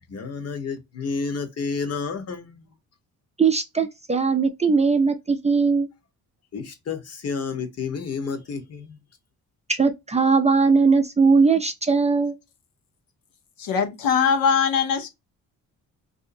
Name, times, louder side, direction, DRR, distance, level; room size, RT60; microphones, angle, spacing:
voice 1, 0.1-2.7 6.5-9.0, left 5 dB, 45° left, 1.1 m, -30 dB
voice 2, 3.4-5.9 9.7-12.3, right 4 dB, 20° right, 0.5 m, -19 dB
voice 3, 13.6-15.1, left 6 dB, 80° left, 0.9 m, -21 dB
3.7 x 2.7 x 2.5 m
cardioid pair, 105°, 35 cm